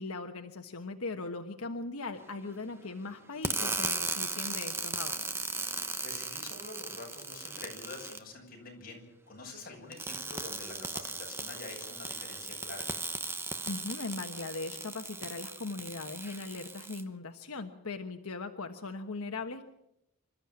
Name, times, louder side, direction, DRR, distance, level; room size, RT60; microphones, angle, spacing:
voice 1, 0.0-5.6 13.7-19.6, left 3 dB, 80° left, 5 dB, 1.3 m, -39 dB
sound 1, 3.4-8.2 9.9-17.0, right 3 dB, 10° right, 1.0 m, -37 dB
voice 2, 5.7-12.9, left 3 dB, 40° left, 0 dB, 7.8 m, -46 dB
27.0 x 13.5 x 8.8 m, 0.87 s
head